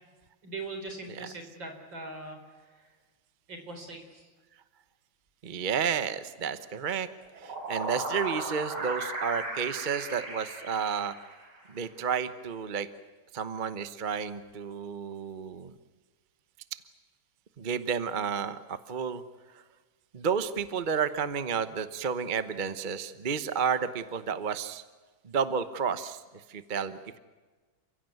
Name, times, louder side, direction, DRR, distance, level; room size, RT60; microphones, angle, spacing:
voice 1, 0.4-3.0 3.5-4.3, right 3 dB, 60° right, 5 dB, 4.8 m, -41 dB
voice 2, 5.4-7.1 7.4-11.1 11.7-12.9 13.3-15.7 17.6-19.2 20.1-24.8 25.2-26.2 26.5-27.2, right 6 dB, 35° right, 12 dB, 0.7 m, -31 dB
sound 1, 7.2-11.6, right 2 dB, 85° right, 6.0 m, -36 dB
29.5 x 16.0 x 9.4 m, 1.3 s
omnidirectional pair, 2.3 m